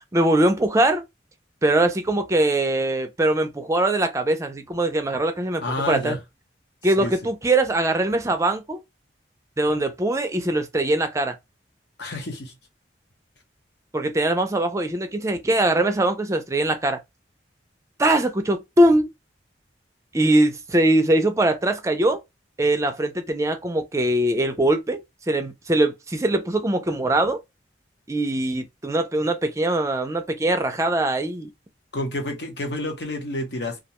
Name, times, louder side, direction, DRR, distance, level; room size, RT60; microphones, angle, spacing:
voice 1, 0.1-1.0 1.6-6.2 6.8-8.8 9.6-11.4 13.9-17.0 18.0-19.1 20.1-22.2 22.6-27.4 28.1-31.5, right 1 dB, 15° right, 0.4 m, -22 dB
voice 2, 5.6-6.2 7.0-7.1 12.0-12.5 31.9-33.8, left 2 dB, 70° left, 0.9 m, -29 dB
2.4 x 2.2 x 2.9 m
head